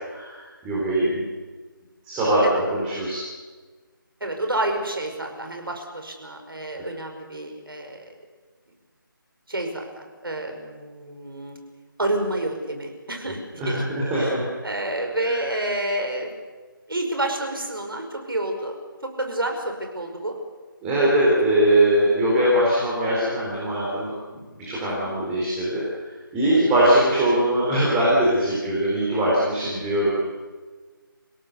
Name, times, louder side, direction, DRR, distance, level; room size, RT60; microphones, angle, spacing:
voice 1, 0.1-1.2 2.0-3.2 6.8-6.9 13.6-14.4 15.2-15.4 20.8-25.8 26.3-30.2, right 1 dB, 10° right, -7 dB, 4.1 m, -21 dB
voice 2, 4.2-8.1 9.5-11.6 12.0-13.8 14.2-14.3 14.6-16.3 16.9-18.8 19.0-20.3 24.9-25.1 26.5-26.8 29.1-29.4, right 1 dB, 75° right, 3 dB, 5.6 m, -29 dB
29.0 x 17.5 x 6.8 m, 1.4 s
figure-of-eight pair, 160°, 12 cm